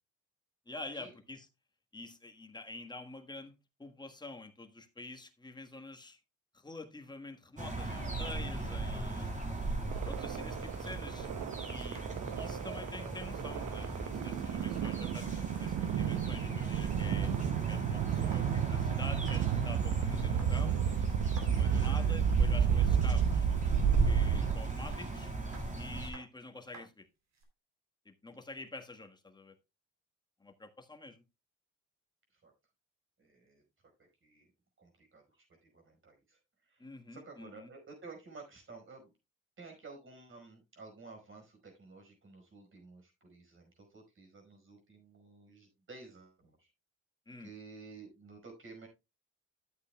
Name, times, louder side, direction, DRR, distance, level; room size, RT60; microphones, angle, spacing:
voice 1, 0.7-1.5 1.9-6.2 6.5-9.3 10.0-11.3 11.7-12.0 12.3-17.3 17.7-20.8 21.4-23.5 24.0-25.3 25.8-27.1 28.0-29.5 30.4-31.2 36.8-37.7 47.3-47.5, left 2 dB, 15° left, 1.4 m, -47 dB
sound 1, 7.6-26.1, right 2 dB, 25° right, 3.6 m, -37 dB
sound 2, 9.7-11.3 11.6-13.8 14.1-15.2 15.5-15.6 15.8-17.1 17.5-17.6 18.0-18.7 19.0-19.6 20.2-22.2 23.1-23.6 24.9-27.4, right 3 dB, 60° right, 3.3 m, -56 dB
sound 3, 9.9-25.0, right 9 dB, 75° right, 0.8 m, -32 dB
voice 2, 33.2-33.6 34.2-34.5 34.8-36.4 36.7-36.8 37.1-39.1 39.6-46.7 47.4-48.9, right 4 dB, 40° right, 5.1 m, -53 dB
12.5 x 8.1 x 2.3 m
cardioid pair, 90°, 30 cm